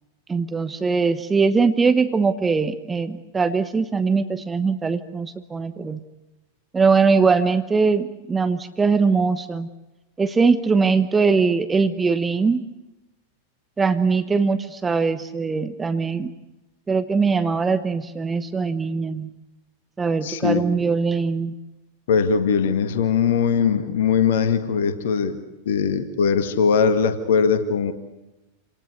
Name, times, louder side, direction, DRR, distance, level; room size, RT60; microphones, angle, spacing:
voice 1, 0.3-6.0 6.7-9.7 10.2-12.6 13.8-16.3 16.9-19.3 20.0-21.6, right 4 dB, 15° right, 11 dB, 1.0 m, -21 dB
voice 2, 20.2-20.6 22.1-25.4 25.7-27.9, left 6 dB, 55° left, 10 dB, 1.8 m, -20 dB
27.5 x 18.5 x 8.1 m, 1.0 s
figure-of-eight pair, 90°, 0 cm